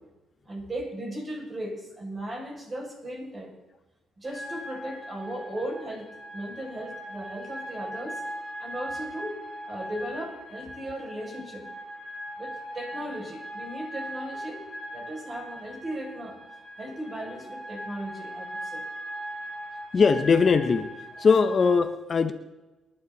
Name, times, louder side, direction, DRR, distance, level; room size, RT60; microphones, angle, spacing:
voice 1, 0.4-3.6 4.2-8.2 8.6-9.4 9.7-11.7 12.4-14.6 14.9-16.4 16.8-18.8, right 1 dB, 30° right, 0 dB, 7.1 m, -37 dB
sound 1, 4.2-21.8, equal, 5° left, 4.9 m, -39 dB
voice 2, 19.9-20.9 21.2-22.3, left 5 dB, 40° left, 9 dB, 1.1 m, -20 dB
29.0 x 11.5 x 4.3 m, 1.1 s
cardioid pair, 90°, 0 cm